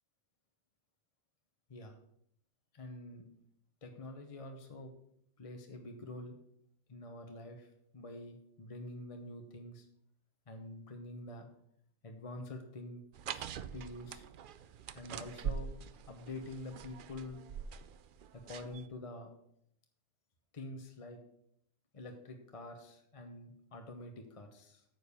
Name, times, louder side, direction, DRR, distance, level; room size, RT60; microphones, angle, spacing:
voice 1, 2.7-3.3 3.8-4.9 5.4-6.4 6.9-9.9 10.5-11.5 12.0-13.0 13.3-14.2 14.9-15.7 16.1-17.4 18.3-19.3 20.5-21.2 21.9-24.8, left 2 dB, 30° left, 4 dB, 0.9 m, -47 dB
sound 1, 13.1-18.9, right 7 dB, 60° right, 0.6 m, -44 dB
9.2 x 5.2 x 6.7 m, 0.72 s
omnidirectional pair, 1.2 m